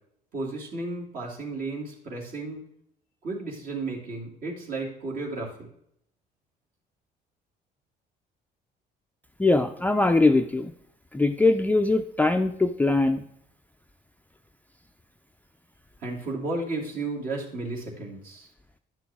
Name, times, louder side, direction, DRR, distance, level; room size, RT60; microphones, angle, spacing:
voice 1, 0.3-2.6 3.2-5.7 16.0-18.5, right 3 dB, 55° right, -2 dB, 2.7 m, -33 dB
voice 2, 9.4-10.7 11.1-13.2, left 2 dB, 10° left, 6 dB, 0.4 m, -22 dB
11.0 x 6.1 x 3.5 m, 0.72 s
cardioid pair, 110°, 17 cm